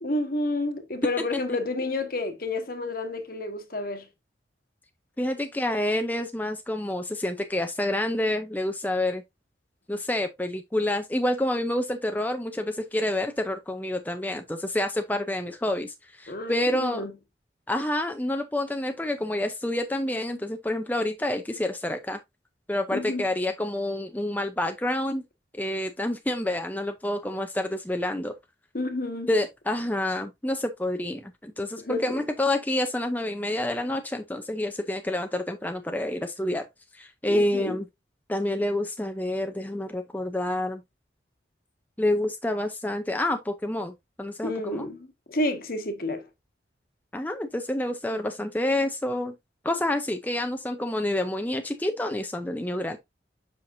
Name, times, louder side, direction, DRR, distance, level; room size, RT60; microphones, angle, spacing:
voice 1, 0.0-4.1 16.3-17.1 22.9-23.3 28.7-29.3 31.8-32.2 37.3-37.8 44.4-46.3, left 2 dB, 50° left, 1.2 m, -30 dB
voice 2, 5.2-9.2 9.9-17.0 17.7-22.2 22.7-25.2 25.5-28.3 29.3-36.7 36.9-37.9 38.3-40.8 42.0-44.9 47.1-49.3 49.6-53.0, left 1 dB, 10° left, 0.5 m, -28 dB
7.5 x 5.8 x 2.6 m
head